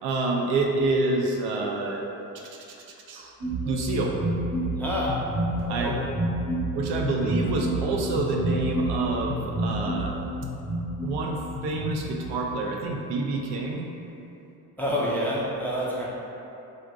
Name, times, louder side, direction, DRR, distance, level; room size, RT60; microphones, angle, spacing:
voice 1, 0.0-2.1 2.7-2.8 3.1-3.3 3.6-4.2 5.7-5.9 6.7-10.1 11.0-13.9, right 3 dB, 55° right, 0 dB, 0.5 m, -27 dB
sound 1, 3.4-13.0, right 1 dB, 70° right, 0.9 m, -30 dB
voice 2, 4.8-5.2 5.7-6.0 14.8-16.1, equal, 5° left, -6 dB, 0.4 m, -28 dB
2.6 x 2.1 x 3.7 m, 2.8 s
hypercardioid pair, 55°, 49 cm